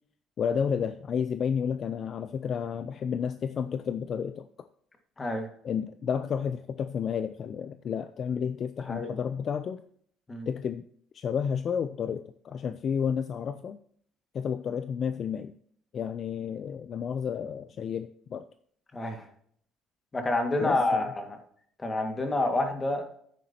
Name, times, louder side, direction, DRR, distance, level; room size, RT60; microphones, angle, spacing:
voice 1, 0.4-4.5 5.6-9.8 10.5-10.8 11.1-13.8 14.3-15.5 15.9-18.4 20.6-21.0, left 7 dB, 45° left, 11 dB, 0.5 m, -31 dB
voice 2, 5.2-5.5 8.9-9.1 10.3-10.5 18.9-19.3 20.1-21.4 21.8-23.0, left 2 dB, 20° left, 4 dB, 1.8 m, -28 dB
9.6 x 9.2 x 2.9 m, 0.63 s
cardioid pair, 115°, 0 cm